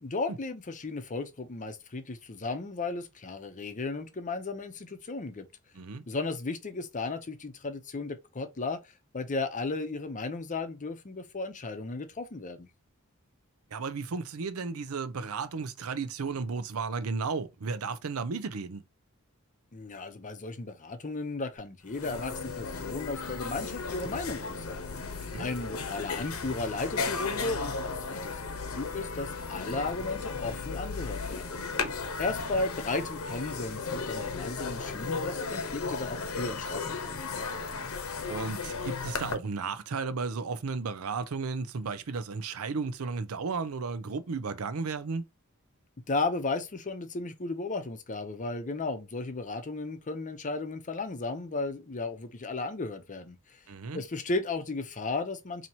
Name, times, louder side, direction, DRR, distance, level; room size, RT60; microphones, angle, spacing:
voice 1, 0.0-5.5 6.1-8.8 9.1-12.7 19.7-24.8 25.4-31.6 32.2-37.1 46.1-53.6 53.9-55.7, left 3 dB, 35° left, 0.7 m, -35 dB
voice 2, 13.7-18.8 25.2-25.5 31.6-31.9 38.3-45.2 53.7-54.0, right 4 dB, 85° right, 0.5 m, -34 dB
sound 1, 21.6-21.7 21.9-39.3, left 4 dB, 85° left, 0.9 m, -35 dB
4.3 x 2.8 x 2.7 m
head